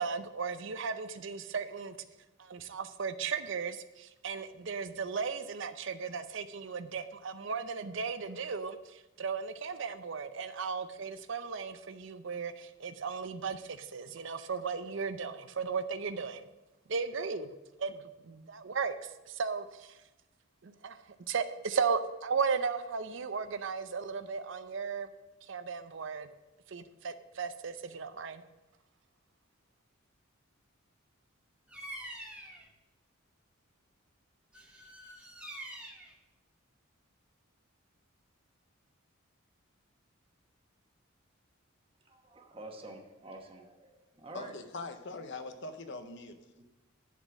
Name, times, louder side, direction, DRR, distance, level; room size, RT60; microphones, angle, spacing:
voice 1, 0.0-2.0 2.4-16.5 16.9-17.5 17.8-20.0 20.6-25.1 25.4-26.3 26.7-28.4, right 5 dB, 60° right, 0.6 m, -36 dB
Bird vocalization bird call bird song, 31.7-32.7 34.5-36.1, right 1 dB, 5° right, 1.2 m, -45 dB
voice 2, 42.0-44.6 46.6-46.7, right 2 dB, 25° right, 1.2 m, -48 dB
voice 3, 44.3-46.5, left 3 dB, 55° left, 0.7 m, -42 dB
11.0 x 4.3 x 6.1 m
head